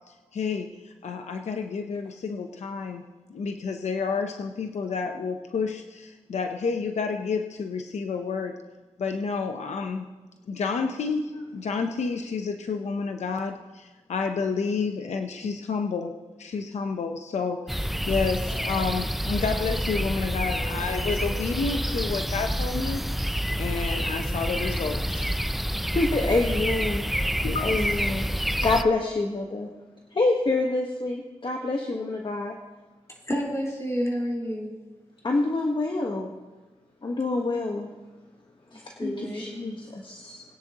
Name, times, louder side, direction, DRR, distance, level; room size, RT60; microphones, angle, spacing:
voice 1, 0.1-3.0 3.3-8.5 9.0-10.1 10.5-16.1 16.4-25.4 27.4-27.9, left 5 dB, 90° left, 5 dB, 0.8 m, -30 dB
sound 1, 17.7-28.8, equal, ahead, 0.5 m, -28 dB
voice 2, 25.9-27.0 27.6-28.3 28.6-29.7 30.1-32.6 35.2-36.3 37.0-37.9 38.7-40.4, left 2 dB, 45° left, 1 dB, 1.3 m, -26 dB
voice 3, 33.3-34.7 38.7-39.5, equal, 25° left, -2 dB, 4.2 m, -29 dB
21.0 x 9.9 x 3.0 m, 1.2 s
cardioid pair, 70°, 11 cm